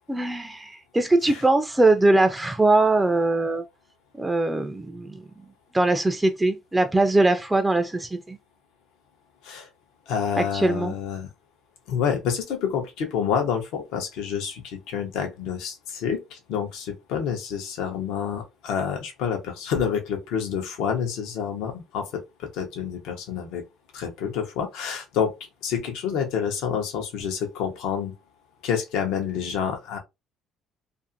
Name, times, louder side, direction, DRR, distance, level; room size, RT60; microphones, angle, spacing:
voice 1, 0.1-3.6 4.2-5.2 5.7-8.4 10.4-10.9, right 2 dB, 10° right, 0.3 m, -21 dB
voice 2, 10.1-11.3 11.9-23.6 23.9-25.3 25.6-28.1 28.6-30.0, left 7 dB, 80° left, 0.8 m, -28 dB
2.5 x 2.5 x 2.5 m
cardioid pair, 105°, 0 cm